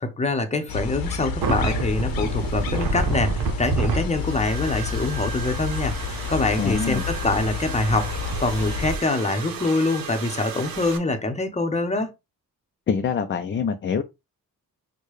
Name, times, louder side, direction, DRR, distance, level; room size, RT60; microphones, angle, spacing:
voice 1, 0.0-6.0 6.3-12.1, left 2 dB, 20° left, 0.8 m, -25 dB
sound 1, 0.7-8.9, left 7 dB, 75° left, 0.8 m, -30 dB
sound 2, 1.4-11.0, right 5 dB, 70° right, 0.8 m, -30 dB
voice 2, 6.6-7.0 12.9-14.0, left 6 dB, 35° left, 0.4 m, -25 dB
4.5 x 2.2 x 3.1 m
cardioid pair, 90°, 35 cm